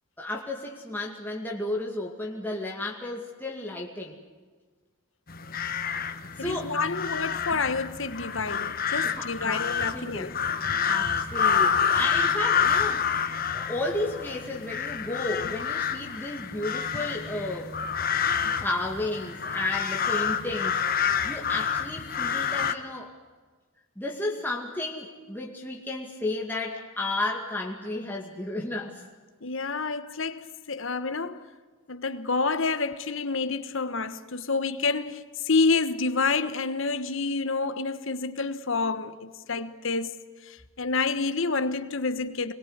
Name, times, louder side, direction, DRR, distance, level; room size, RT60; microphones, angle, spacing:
voice 1, 0.2-4.2 6.4-6.8 9.0-9.6 9.9-10.3 10.9-13.3 13.5-17.7 18.6-23.1 24.0-29.0 30.0-30.1, left 2 dB, 10° left, 2.2 m, -33 dB
sound 1, 5.3-22.7, left 7 dB, 40° left, 1.2 m, -28 dB
voice 2, 6.4-10.3 29.4-31.4 31.9-40.1 40.4-42.5, left 4 dB, 65° left, 1.3 m, -28 dB
26.0 x 22.0 x 8.1 m
head